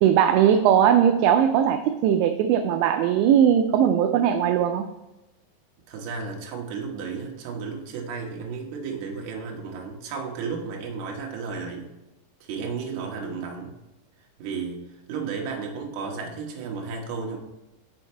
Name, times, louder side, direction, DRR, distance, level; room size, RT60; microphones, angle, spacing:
voice 1, 0.0-4.9, right 9 dB, 85° right, 6 dB, 2.7 m, -19 dB
voice 2, 5.9-11.9 12.4-13.7 14.4-17.4, right 5 dB, 65° right, 0 dB, 2.8 m, -33 dB
6.4 x 6.4 x 4.4 m, 1.0 s
omnidirectional pair, 5.4 m